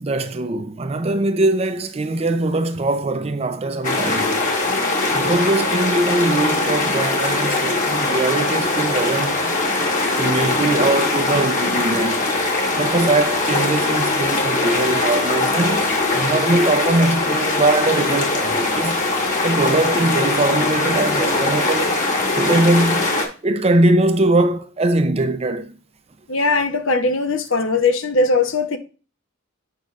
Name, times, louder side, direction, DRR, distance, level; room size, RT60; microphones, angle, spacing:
voice 1, 0.0-4.4 5.1-9.6 10.2-12.3 12.8-19.0 19.4-22.0 22.3-23.1 23.4-25.7, right 2 dB, 30° right, 0.5 m, -21 dB
sound 1, 3.8-23.3, left 2 dB, 40° left, 1.3 m, -21 dB
voice 2, 26.3-28.8, left 3 dB, 70° left, 0.8 m, -19 dB
8.1 x 5.3 x 2.4 m
head